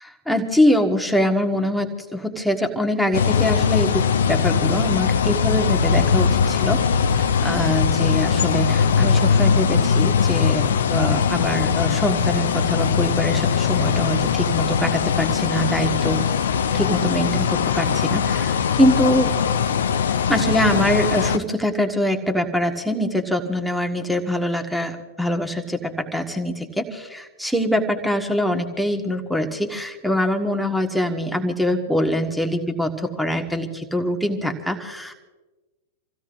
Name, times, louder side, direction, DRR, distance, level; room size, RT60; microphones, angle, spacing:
voice 1, 0.3-16.2 16.7-19.4 20.3-35.1, left 1 dB, ahead, 5 dB, 1.6 m, -23 dB
sound 1, 3.1-21.4, left 6 dB, 65° left, 0.7 m, -20 dB
27.5 x 16.0 x 2.6 m, 1.2 s
figure-of-eight pair, 95°, 0 cm